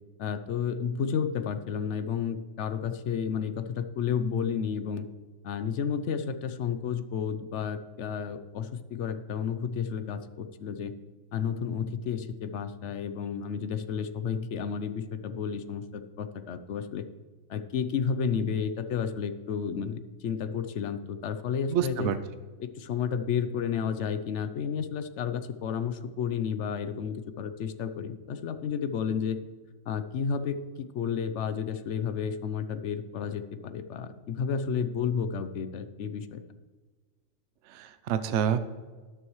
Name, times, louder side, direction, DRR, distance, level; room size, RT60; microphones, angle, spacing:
voice 1, 0.2-5.1 5.4-10.9 11.3-17.1 17.5-22.1 22.6-29.4 29.9-36.4, left 7 dB, 65° left, 11 dB, 0.9 m, -31 dB
voice 2, 21.7-22.2 37.7-38.6, right 9 dB, 65° right, 11 dB, 0.8 m, -27 dB
12.5 x 10.0 x 3.1 m, 1.4 s
omnidirectional pair, 1.4 m